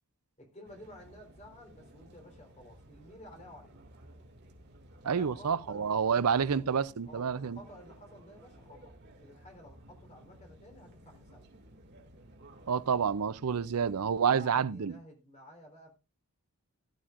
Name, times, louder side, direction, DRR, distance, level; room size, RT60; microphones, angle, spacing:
voice 1, 0.4-3.8 5.1-6.8 7.1-11.5 14.3-16.0, equal, 30° left, 3.8 m, -52 dB
sound 1, 0.6-14.1, right 1 dB, 50° right, 2.3 m, -56 dB
voice 2, 5.0-7.6 12.7-14.9, right 6 dB, 90° right, 0.5 m, -28 dB
15.5 x 12.0 x 2.5 m
head